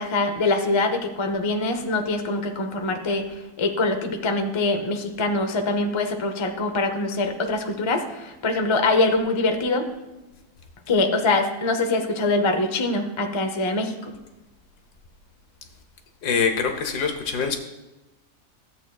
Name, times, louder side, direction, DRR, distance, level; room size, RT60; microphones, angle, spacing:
voice 1, 0.0-9.8 10.9-14.1, left 2 dB, 50° left, 5 dB, 0.3 m, -24 dB
voice 2, 16.2-17.6, left 6 dB, 80° left, 5 dB, 1.5 m, -24 dB
13.5 x 7.9 x 2.3 m, 1.0 s
omnidirectional pair, 1.7 m